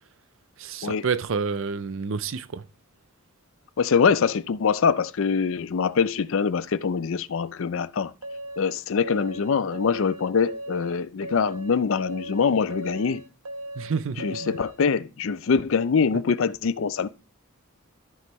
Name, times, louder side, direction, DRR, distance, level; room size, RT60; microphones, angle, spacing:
voice 1, 0.6-2.6 13.8-14.5, right 5 dB, 60° right, 0.5 m, -29 dB
voice 2, 3.8-8.1 8.6-13.2 14.2-17.1, left 6 dB, 60° left, 0.4 m, -24 dB
sound 1, 8.2-14.8, right 1 dB, 90° right, 1.0 m, -38 dB
13.0 x 5.4 x 3.1 m
head